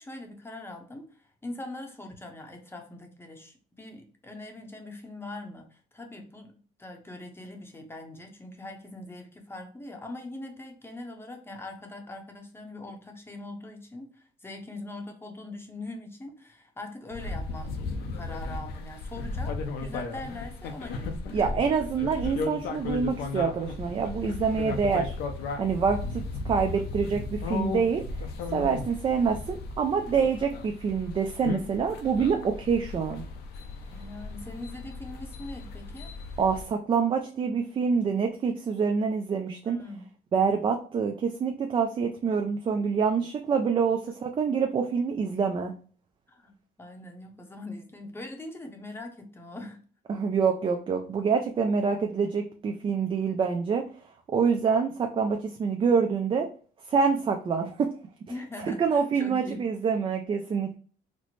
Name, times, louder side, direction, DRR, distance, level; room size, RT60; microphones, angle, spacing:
voice 1, 0.0-21.5 33.9-36.1 39.6-40.1 42.3-42.4 46.3-49.8 58.3-59.6, left 2 dB, 15° left, 3 dB, 0.7 m, -42 dB
sound 1, 17.1-36.6, left 3 dB, 70° left, 0.6 m, -35 dB
voice 2, 21.3-25.2 25.6-28.0 28.5-33.2 36.4-39.8 40.3-45.7 50.1-53.8 54.3-56.5 56.9-57.9 58.6-60.7, right 6 dB, 30° right, 4 dB, 0.4 m, -26 dB
4.1 x 2.1 x 3.0 m, 0.42 s
cardioid pair, 110°, 17 cm